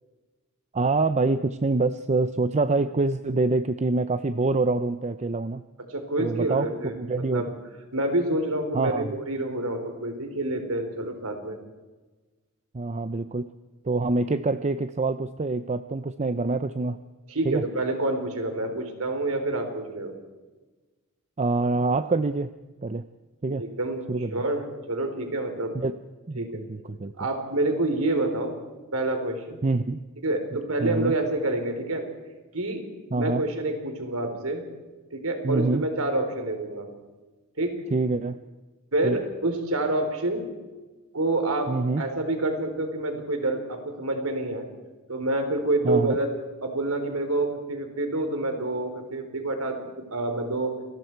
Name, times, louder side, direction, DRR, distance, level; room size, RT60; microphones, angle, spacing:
voice 1, 0.7-5.6 6.2-7.4 8.7-9.1 12.7-13.5 13.8-17.0 17.4-17.6 21.4-22.5 22.8-23.0 23.4-23.6 24.1-24.4 25.7-26.0 26.3-27.1 29.6-30.0 30.8-31.1 33.1-33.4 35.4-35.9 37.9-38.4 39.0-39.2 41.7-42.1 45.8-46.1, right 3 dB, 35° right, 12 dB, 0.6 m, -25 dB
voice 2, 5.9-6.9 7.3-7.6 7.9-11.6 17.3-20.1 23.6-24.0 24.3-25.7 26.4-26.6 27.2-28.6 28.9-29.6 30.2-32.1 32.5-34.6 35.1-36.9 37.6-37.8 38.9-40.5 41.1-44.7 45.1-46.3 46.6-50.7, right 2 dB, 80° right, 6 dB, 3.8 m, -27 dB
28.5 x 20.0 x 4.6 m, 1.3 s
head